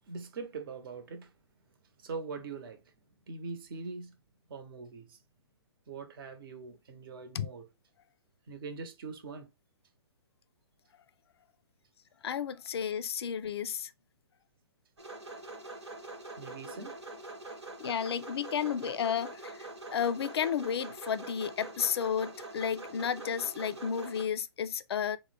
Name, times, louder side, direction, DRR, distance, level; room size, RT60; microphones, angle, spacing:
voice 1, 0.1-1.3 2.0-2.8 3.3-4.2 4.5-5.2 5.9-7.7 8.5-9.5 16.4-16.9, right 4 dB, 55° right, 0.9 m, -42 dB
voice 2, 12.2-13.9 17.8-25.2, left 8 dB, 70° left, 0.4 m, -32 dB
sound 1, 15.0-24.2, right 2 dB, 85° right, 1.2 m, -44 dB
3.8 x 2.1 x 3.3 m
hypercardioid pair, 130°, 14 cm